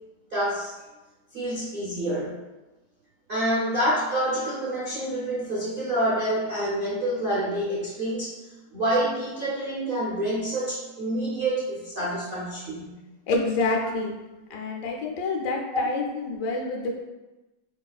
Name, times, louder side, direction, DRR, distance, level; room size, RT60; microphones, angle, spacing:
voice 1, 0.3-0.7 1.3-2.3 3.3-8.4 8.7-13.0 15.7-15.8, right 1 dB, 65° right, -7 dB, 0.5 m, -27 dB
voice 2, 13.3-14.1 14.5-17.0, left 3 dB, 80° left, 0 dB, 1.2 m, -27 dB
4.2 x 2.4 x 2.3 m, 1.1 s
omnidirectional pair, 1.8 m